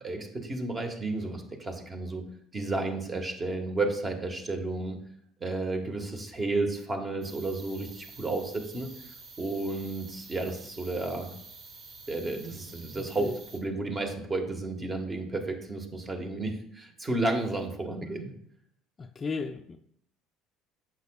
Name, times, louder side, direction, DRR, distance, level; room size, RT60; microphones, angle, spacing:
voice 1, 0.0-2.2 2.5-5.0 5.4-8.9 9.4-11.3 12.1-18.3, right 2 dB, 30° right, 4 dB, 1.5 m, -32 dB
sound 1, 7.2-13.6, right 4 dB, 55° right, 1.3 m, -49 dB
voice 2, 13.0-13.3 18.0-18.1 19.0-19.8, left 4 dB, 35° left, 6 dB, 0.5 m, -35 dB
8.1 x 6.2 x 2.4 m, 0.69 s
hypercardioid pair, 70°, 0 cm